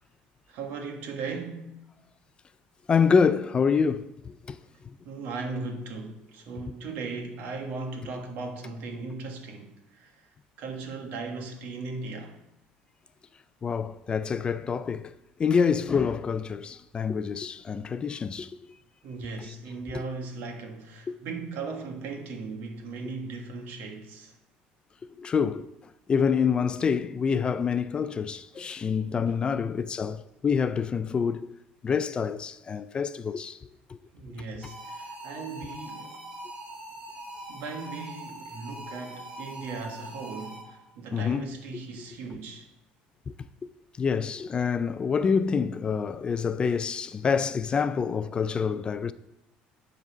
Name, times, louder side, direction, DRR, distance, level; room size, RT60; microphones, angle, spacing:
voice 1, 0.5-1.8 5.0-10.1 10.6-12.4 19.0-24.4 28.5-28.7 29.3-29.4 34.1-36.2 37.5-42.7, right 4 dB, 70° right, 1.5 m, -37 dB
voice 2, 2.9-4.6 13.6-15.1 15.4-18.5 19.9-20.0 21.1-21.2 25.2-25.7 26.1-31.5 31.8-33.6 33.9-34.0 41.1-41.5 43.3-43.4 44.0-49.1, left 6 dB, 30° left, 0.3 m, -26 dB
sound 1, 34.6-40.9, right 1 dB, 35° right, 2.3 m, -42 dB
10.0 x 4.0 x 6.1 m
cardioid pair, 115°, 3 cm